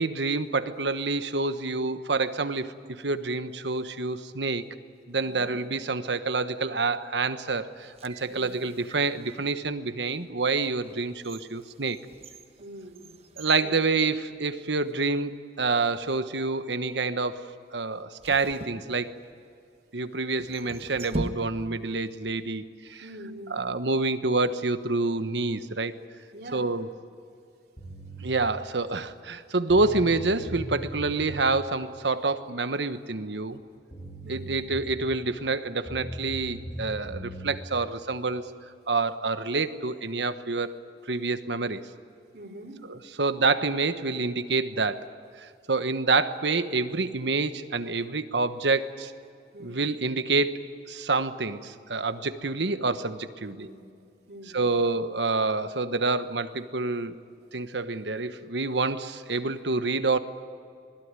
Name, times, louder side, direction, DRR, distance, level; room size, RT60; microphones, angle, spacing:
voice 1, 0.0-4.7 5.1-12.0 13.4-19.1 19.9-23.0 23.5-26.0 26.5-26.9 28.2-33.6 34.3-38.5 38.9-40.8 41.1-41.8 42.9-45.1 45.4-49.1 49.6-53.7 54.5-57.2 57.5-60.2, right 3 dB, 80° right, 11 dB, 1.2 m, -27 dB
voice 2, 5.2-5.6 8.3-8.7 12.6-13.1 13.6-13.7 23.0-23.6 26.3-26.7 34.2-34.7 42.3-42.9 49.5-49.8 53.4-53.8 54.2-54.9, right 1 dB, 60° right, 1 dB, 3.5 m, -43 dB
sound 1, 7.8-9.5 10.2-10.3 10.8-14.6 14.9-15.0 15.8-16.2 18.2-19.5 20.3-21.9 22.2-22.3, right 1 dB, 35° right, 1.2 m, -41 dB
sound 2, 27.8-28.3 29.3-29.4 29.7-31.4 33.5-33.6 33.9-35.1 35.8-37.5, right 1 dB, 20° left, 3.8 m, -39 dB
26.0 x 20.5 x 9.7 m, 2.4 s
head